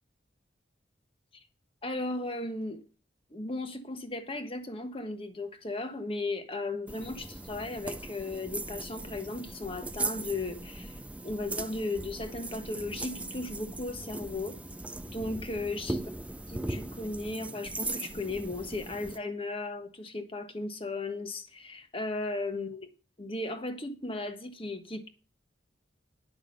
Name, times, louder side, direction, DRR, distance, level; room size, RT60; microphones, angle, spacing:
voice 1, 1.8-2.8 3.3-14.6 15.0-16.0 16.5-22.9 23.2-25.1, left 2 dB, 30° left, 1.3 m, -36 dB
sound 1, 6.9-19.2, right 2 dB, 5° right, 0.4 m, -39 dB
10.5 x 6.0 x 6.6 m
head